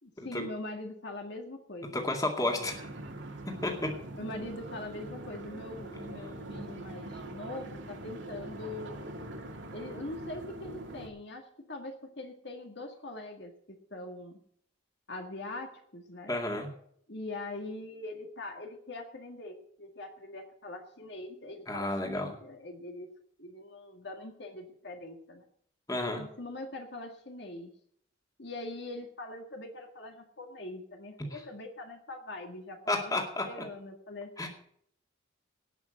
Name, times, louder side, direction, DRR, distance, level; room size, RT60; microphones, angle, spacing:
voice 1, 0.0-2.1 2.5-2.7 4.1-9.0 9.7-14.4 15.1-16.4 17.1-23.1 23.4-25.4 26.2-27.7 28.4-34.5, left 2 dB, 55° left, 4 dB, 1.8 m, -42 dB
voice 2, 1.9-2.8 3.6-3.9 16.3-16.7 21.7-22.3 25.9-26.2 32.9-33.5 34.4-34.5, left 2 dB, 15° left, 2 dB, 2.2 m, -31 dB
sound 1, 2.6-11.1, right 2 dB, 65° right, 2.1 m, -43 dB
18.5 x 6.2 x 7.6 m, 0.65 s
head